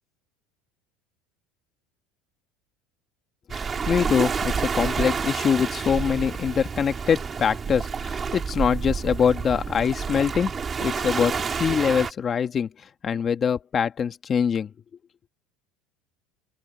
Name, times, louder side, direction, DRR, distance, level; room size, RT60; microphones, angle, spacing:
Waves surf, 3.5-12.1, right 6 dB, 25° right, 3.9 m, -29 dB
voice 1, 3.6-10.5 10.8-12.7 13.0-14.7, left 7 dB, 30° left, 1.7 m, -24 dB
open air
supercardioid pair, 135°, 0 cm